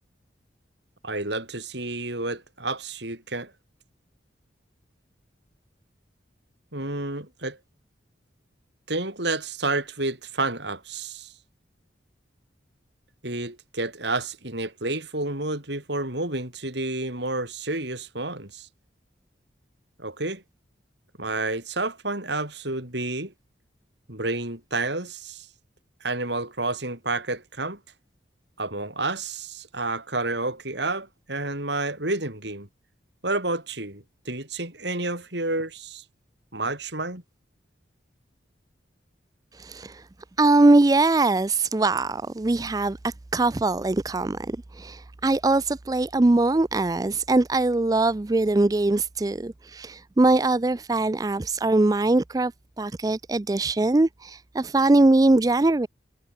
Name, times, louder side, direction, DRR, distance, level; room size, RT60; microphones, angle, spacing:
voice 1, 1.0-3.5 6.7-7.6 8.9-11.3 13.2-18.7 20.0-20.4 21.2-23.3 24.1-25.5 26.0-27.8 28.6-32.7 33.2-36.0 36.5-37.2, right 2 dB, 65° right, 5.7 m, -30 dB
voice 2, 39.5-40.0 40.4-52.5 52.8-55.9, right 2 dB, 20° right, 0.4 m, -22 dB
head